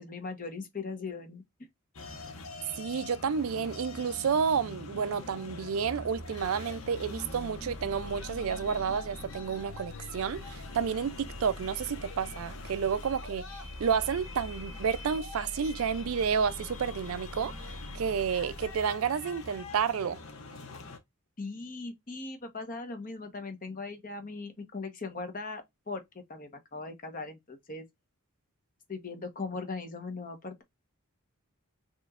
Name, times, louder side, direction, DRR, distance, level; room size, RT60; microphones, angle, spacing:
voice 1, 0.0-1.4 21.4-26.0 26.3-27.8 28.9-30.6, left 3 dB, 40° left, 1.0 m, -39 dB
sound 1, 1.9-21.0, left 3 dB, 65° left, 1.0 m, -44 dB
voice 2, 2.8-20.2, right 6 dB, 70° right, 0.4 m, -30 dB
sound 2, 6.1-18.8, equal, 5° left, 1.3 m, -46 dB
5.3 x 3.0 x 2.4 m
head